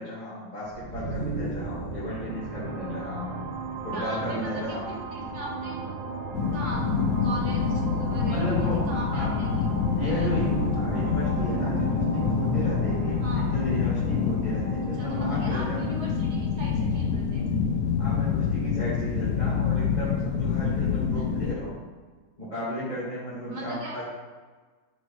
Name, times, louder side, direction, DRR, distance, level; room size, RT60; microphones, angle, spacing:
voice 1, 0.0-3.4 3.8-4.8 8.3-9.3 9.9-15.8 18.0-21.7 22.4-24.0, left 1 dB, 25° left, -11 dB, 1.8 m, -34 dB
sound 1, 0.6-18.3, right 4 dB, 85° right, 1.7 m, -35 dB
voice 2, 3.9-5.8 6.5-6.8 7.2-9.7 10.0-10.3 13.2-13.5 15.0-17.5 21.1-21.2 23.5-24.0, right 1 dB, 60° right, -3 dB, 1.9 m, -38 dB
sound 2, 6.3-21.5, left 6 dB, 70° left, 1.0 m, -27 dB
10.5 x 4.2 x 3.0 m, 1.4 s
omnidirectional pair, 2.0 m